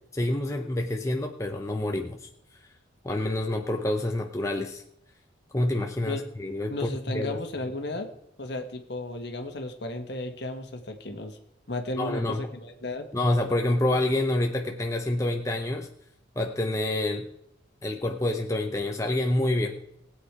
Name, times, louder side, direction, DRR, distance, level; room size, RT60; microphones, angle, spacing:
voice 1, 0.1-2.3 3.0-4.8 5.5-7.4 12.0-12.5 13.1-15.9 16.4-17.3 17.8-20.0, left 1 dB, 15° left, 2 dB, 0.8 m, -27 dB
voice 2, 6.7-8.1 8.4-11.4 11.7-13.1, left 2 dB, 60° left, 5 dB, 1.7 m, -34 dB
19.5 x 8.5 x 4.9 m, 0.77 s
head